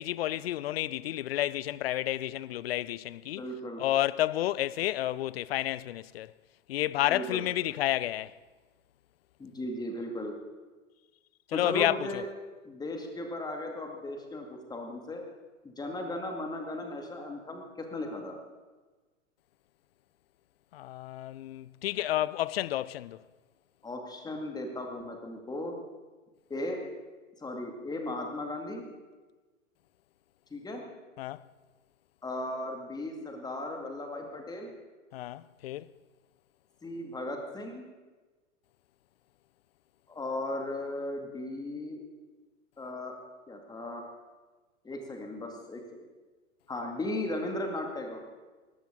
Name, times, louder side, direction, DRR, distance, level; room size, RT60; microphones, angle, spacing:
voice 1, 0.0-3.4 3.8-6.3 6.7-8.3 11.5-12.2 20.7-23.2 31.2-31.4 35.1-35.9, left 14 dB, 50° left, 0.5 m, -30 dB
voice 2, 3.4-3.8 7.1-7.5 9.4-10.3 11.5-12.3 12.6-15.2 15.6-18.4 23.8-25.8 26.5-26.8 27.4-28.9 30.5-30.8 32.2-34.7 36.8-37.8 40.1-42.0 42.8-43.2 43.5-44.1 44.8-45.8 46.7-48.2, left 1 dB, 10° left, 2.1 m, -36 dB
19.5 x 14.0 x 3.8 m
figure-of-eight pair, 105°, 40 cm